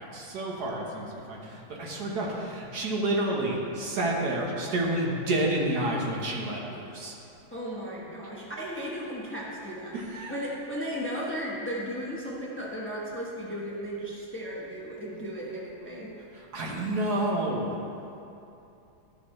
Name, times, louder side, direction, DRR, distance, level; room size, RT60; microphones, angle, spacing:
voice 1, 0.0-7.2 10.1-10.4 16.3-17.8, right 1 dB, 55° right, -2 dB, 1.4 m, -29 dB
voice 2, 7.5-10.0 10.3-16.1, equal, 15° left, -5 dB, 0.4 m, -35 dB
12.0 x 6.8 x 3.2 m, 2.8 s
omnidirectional pair, 2.4 m